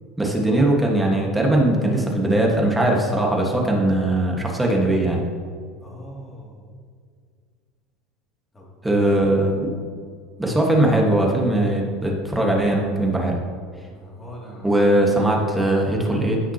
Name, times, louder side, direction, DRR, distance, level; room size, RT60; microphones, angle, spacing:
voice 1, 0.2-5.2 8.8-9.7 10.4-13.4 14.6-16.4, right 1 dB, 5° right, -1 dB, 1.5 m, -20 dB
voice 2, 5.8-6.6 8.5-9.2 13.8-14.8, equal, 15° left, -4 dB, 2.5 m, -41 dB
15.5 x 5.9 x 2.9 m, 2.1 s
supercardioid pair, 145°, 0 cm